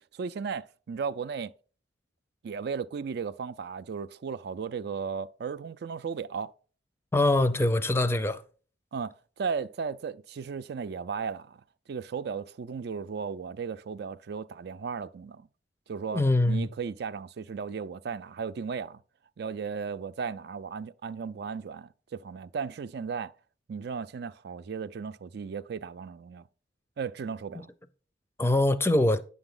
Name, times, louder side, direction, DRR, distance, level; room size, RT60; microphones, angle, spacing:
voice 1, 0.0-1.5 2.4-6.5 8.9-11.6 11.9-15.5 15.9-19.0 19.4-23.3 23.7-26.4 27.0-27.7, right 6 dB, 60° right, 0.4 m, -35 dB
voice 2, 7.1-8.4 16.1-16.7 28.4-29.2, left 1 dB, 15° left, 0.5 m, -23 dB
9.7 x 7.0 x 3.8 m
head